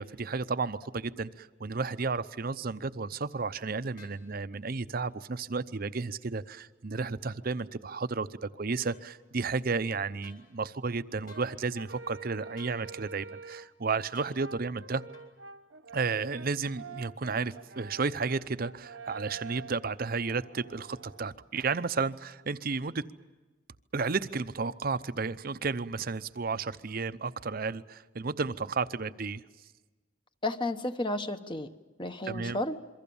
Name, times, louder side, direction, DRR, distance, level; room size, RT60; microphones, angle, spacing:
voice 1, 0.0-15.0 15.9-23.0 23.9-29.4 32.3-32.6, right 4 dB, 50° right, 13 dB, 0.7 m, -32 dB
sound 1, 4.0-4.2 8.9-9.0 10.2-10.4 11.3-11.5 12.6-12.8 14.1-14.4 15.1-15.3, left 5 dB, 45° left, 5.2 m, -55 dB
Brass instrument, 11.3-13.8 14.4-21.3, right 4 dB, 85° right, 1.1 m, -47 dB
voice 2, 30.4-31.7 32.0-32.8, left 2 dB, 25° left, 8 dB, 1.1 m, -32 dB
27.5 x 23.5 x 7.1 m, 1.2 s
head